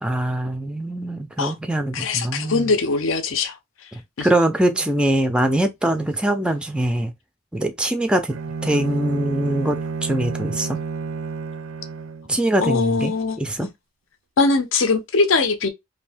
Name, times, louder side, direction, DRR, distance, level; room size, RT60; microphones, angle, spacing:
voice 1, 0.0-2.7 3.9-7.1 7.5-8.4 8.6-10.8 12.3-13.7, right 1 dB, 5° right, 0.3 m, -23 dB
voice 2, 1.9-3.6 3.8-3.9 4.2-4.3 12.6-13.7 14.4-15.7, left 4 dB, 70° left, 0.6 m, -21 dB
Bowed string instrument, 8.3-12.4, right 4 dB, 75° right, 0.4 m, -30 dB
2.6 x 2.6 x 3.4 m
head